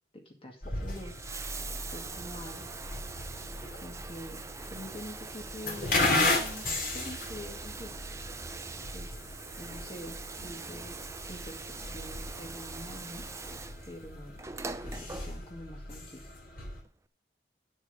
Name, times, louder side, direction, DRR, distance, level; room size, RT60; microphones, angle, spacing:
voice 1, 0.3-1.2 1.9-2.6 3.7-6.1 6.4-6.6 6.9-8.0 8.9-9.2 9.6-13.2 13.9-14.4 14.8-16.3, equal, 30° left, 3 dB, 2.1 m, -45 dB
sound 1, 0.6-16.8, left 2 dB, 55° left, 2.8 m, -36 dB
Bathtub (filling or washing), 0.8-15.7 16.9-17.0, right 4 dB, 15° right, 0.6 m, -43 dB
10.5 x 6.9 x 5.5 m, 0.39 s
head